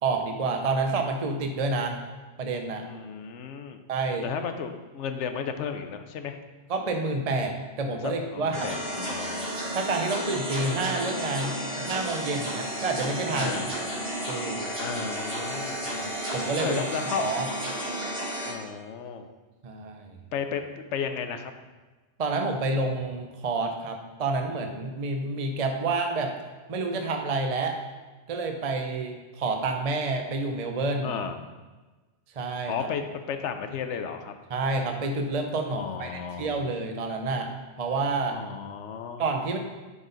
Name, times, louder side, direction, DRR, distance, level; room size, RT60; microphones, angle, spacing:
voice 1, 0.0-2.0 2.4-2.9 3.9-4.3 6.7-8.7 9.0-9.1 9.7-13.5 14.3-14.7 15.9-16.8 17.2-17.5 19.6-20.2 22.2-26.3 26.7-27.8 28.3-31.2 32.4-32.9 34.5-37.5 37.8-38.4 39.2-39.6, right 3 dB, 40° right, 4 dB, 0.7 m, -29 dB
voice 2, 2.8-3.8 4.2-6.4 8.0-9.5 13.3-13.7 14.8-15.8 16.6-17.3 18.5-19.3 20.3-21.5 31.0-31.3 32.7-33.0 33.3-34.3 35.7-36.6 38.3-39.2, left 7 dB, 85° left, 7 dB, 1.0 m, -33 dB
sound 1, 8.5-18.5, equal, 60° right, 2.6 m, -32 dB
11.0 x 4.0 x 3.9 m, 1.2 s
omnidirectional pair, 1.2 m